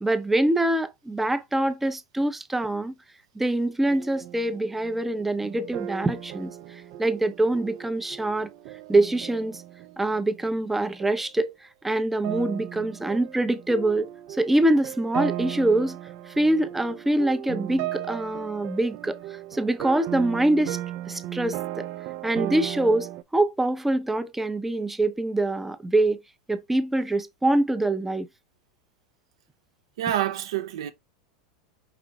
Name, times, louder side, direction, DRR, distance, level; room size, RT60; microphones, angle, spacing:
voice 1, 0.0-2.9 3.4-8.5 8.9-9.6 10.0-11.5 11.8-16.0 16.3-20.8 21.1-21.9 22.2-26.2 26.5-28.3, right 1 dB, 10° right, 0.6 m, -24 dB
sound 1, 3.9-10.7 11.0-11.3 12.2-23.2, right 13 dB, 55° right, 0.4 m, -36 dB
voice 2, 30.0-30.9, right 11 dB, 75° right, 0.9 m, -27 dB
5.1 x 3.4 x 2.9 m
hypercardioid pair, 110°, 3 cm